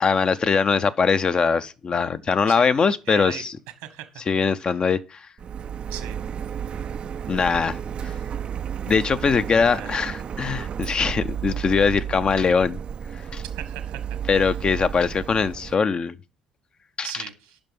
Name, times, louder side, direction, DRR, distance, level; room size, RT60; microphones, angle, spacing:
voice 1, 0.0-3.5 4.3-5.3 7.3-8.2 8.9-12.8 13.1-13.4 14.3-16.2 17.0-17.1, left 5 dB, 40° left, 0.6 m, -22 dB
voice 2, 3.1-3.4 3.8-4.1 5.9-6.2 9.6-9.9 13.5-14.5 17.0-17.6, right 12 dB, 80° right, 1.5 m, -38 dB
Printer, 5.4-15.7, right 8 dB, 45° right, 0.4 m, -32 dB
8.8 x 5.9 x 5.4 m
hypercardioid pair, 60°, 2 cm